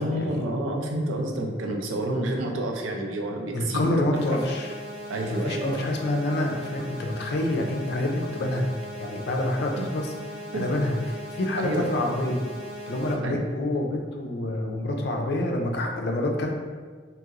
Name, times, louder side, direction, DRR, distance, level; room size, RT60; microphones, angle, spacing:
voice 1, 0.0-4.0 4.3-4.5 5.1-5.8 9.8-9.9 10.5-10.6 11.6-11.9 13.2-13.4, right 1 dB, 85° right, 2 dB, 0.4 m, -29 dB
voice 2, 3.5-4.7 5.3-8.7 9.0-10.1 10.5-12.4 12.9-16.5, left 1 dB, 55° left, 1 dB, 0.4 m, -27 dB
sound 1, 4.1-13.1, equal, 50° right, 0.9 m, -39 dB
2.9 x 2.8 x 2.4 m, 1.5 s
head